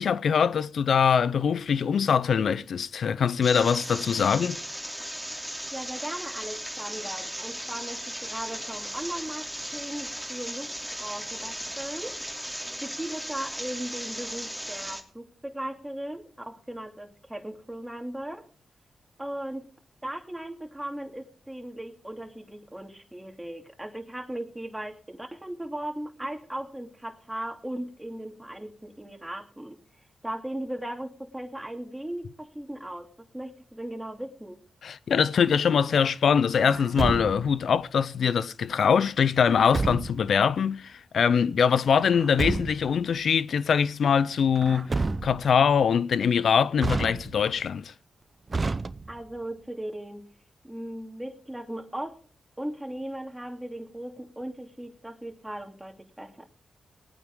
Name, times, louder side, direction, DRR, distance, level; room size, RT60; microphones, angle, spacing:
voice 1, 0.0-4.6 34.8-44.9 45.2-47.9, left 7 dB, 75° left, 0.5 m, -23 dB
sound 1, 3.4-15.0, equal, 5° left, 3.2 m, -36 dB
voice 2, 5.7-10.7 11.0-12.2 12.8-18.5 19.2-19.7 20.0-29.8 30.2-34.6 49.1-50.2 50.6-52.2 52.6-56.5, right 1 dB, 10° right, 2.8 m, -37 dB
Truck, 36.7-37.6 39.5-40.3 42.0-43.0 44.6-45.6 46.8-47.6 48.5-49.4, right 3 dB, 40° right, 0.7 m, -30 dB
19.5 x 9.2 x 3.7 m
supercardioid pair, 45°, 0 cm